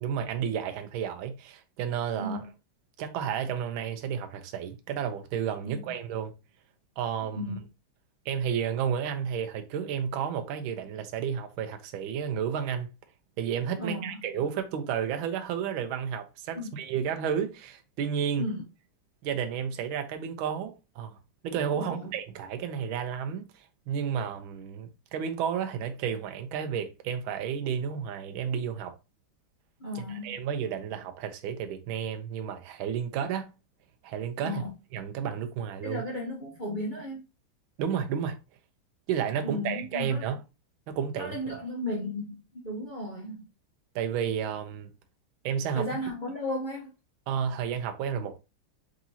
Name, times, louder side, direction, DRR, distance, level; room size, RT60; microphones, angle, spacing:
voice 1, 0.0-2.4 3.0-6.3 7.0-7.4 8.3-12.9 13.4-18.5 19.2-21.1 21.4-28.9 29.9-33.5 34.0-34.6 34.9-36.0 37.8-38.4 39.1-40.4 40.9-41.4 43.9-44.9 45.4-45.9 47.3-48.4, right 8 dB, 75° right, 1.4 m, -32 dB
voice 2, 7.2-7.6 13.8-14.2 16.5-16.7 18.4-18.6 21.7-22.1 29.8-30.4 34.4-34.7 35.8-37.2 39.4-40.3 41.2-43.5 45.7-46.9, left 1 dB, 65° left, 0.4 m, -35 dB
4.0 x 3.7 x 2.7 m
omnidirectional pair, 2.4 m